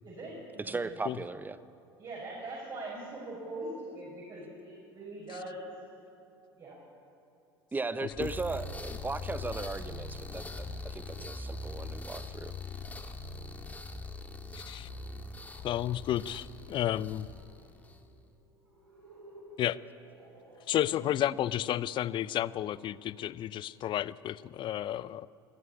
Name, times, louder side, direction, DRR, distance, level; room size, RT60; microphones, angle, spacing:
voice 1, 0.0-0.9 2.0-5.7 6.6-6.8, right 2 dB, 35° right, -4 dB, 7.4 m, -42 dB
voice 2, 0.6-1.6 7.7-12.5, right 3 dB, 15° right, 14 dB, 1.0 m, -37 dB
sound 1, 8.1-18.1, left 3 dB, 10° left, 2.3 m, -42 dB
sound 2, 14.4-24.0, equal, 85° right, 4.7 m, -55 dB
voice 3, 14.5-14.9 15.6-17.3 19.6-19.8 20.7-25.3, left 12 dB, 40° left, 19 dB, 0.6 m, -32 dB
26.5 x 14.0 x 8.8 m, 2.7 s
figure-of-eight pair, 70°, 13 cm